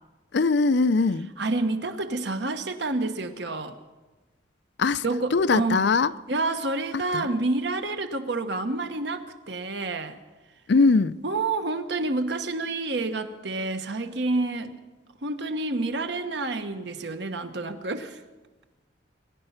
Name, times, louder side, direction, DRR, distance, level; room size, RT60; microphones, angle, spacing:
voice 1, 0.3-1.3 4.8-5.0 5.3-6.1 7.1-7.3 10.7-11.2, left 4 dB, 60° left, 0.5 m, -21 dB
voice 2, 1.4-3.8 5.0-5.8 6.3-10.2 11.2-14.8 15.2-18.2, right 2 dB, 65° right, 1.2 m, -28 dB
22.5 x 11.0 x 5.8 m
head